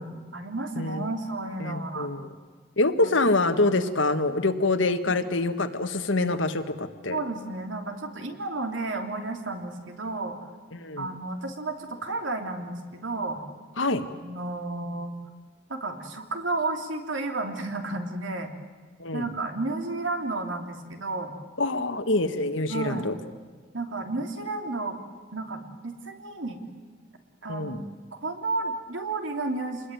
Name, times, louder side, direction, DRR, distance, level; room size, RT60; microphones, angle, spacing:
voice 1, 0.0-2.1 3.0-3.1 5.1-5.2 7.1-10.4 11.0-13.4 14.2-15.1 15.7-18.5 19.1-21.3 22.7-23.1 23.7-25.0 25.3-26.6 27.4-27.8 28.1-29.9, right 2 dB, 85° right, 4 dB, 3.1 m, -32 dB
voice 2, 1.6-2.3 2.8-7.2 10.7-11.1 13.8-14.0 19.0-19.3 21.6-23.1 27.5-27.8, left 2 dB, 80° left, 8 dB, 1.7 m, -25 dB
27.5 x 21.0 x 9.3 m, 1.5 s
head